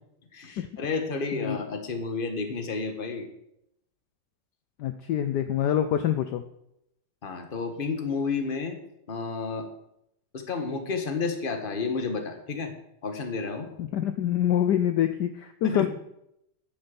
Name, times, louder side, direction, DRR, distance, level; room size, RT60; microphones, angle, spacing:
voice 1, 0.3-3.3 7.2-8.8 9.1-9.7 10.3-12.7 13.0-13.7 15.6-15.9, left 4 dB, 30° left, 6 dB, 1.4 m, -31 dB
voice 2, 4.8-6.4 13.8-15.9, left 10 dB, 70° left, 9 dB, 1.1 m, -26 dB
9.8 x 6.9 x 7.1 m, 0.80 s
omnidirectional pair, 2.1 m